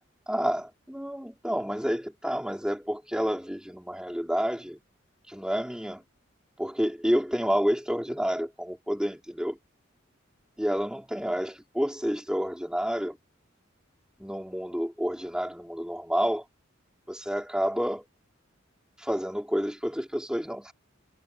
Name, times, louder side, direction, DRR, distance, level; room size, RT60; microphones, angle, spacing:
voice 1, 0.3-4.8 5.3-6.0 6.6-9.6 10.6-13.2 14.2-16.4 17.1-18.1 19.0-20.7, equal, 5° right, 4.3 m, -29 dB
head